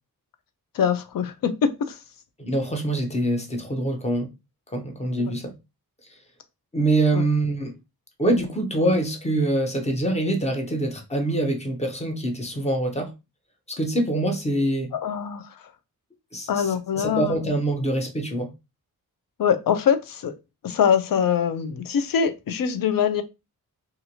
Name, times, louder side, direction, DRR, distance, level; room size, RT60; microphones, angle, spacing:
voice 1, 0.7-2.0 5.2-5.3 7.1-7.2 14.9-15.7 16.5-17.4 19.4-20.3 20.6-23.2, left 7 dB, 70° left, 0.5 m, -23 dB
voice 2, 2.4-4.3 4.7-5.5 6.7-7.8 8.2-13.1 13.7-14.9 16.3-16.7 17.0-18.5, right 1 dB, 20° left, 0.6 m, -24 dB
2.8 x 2.5 x 2.7 m
wide cardioid pair, 150°, 35 cm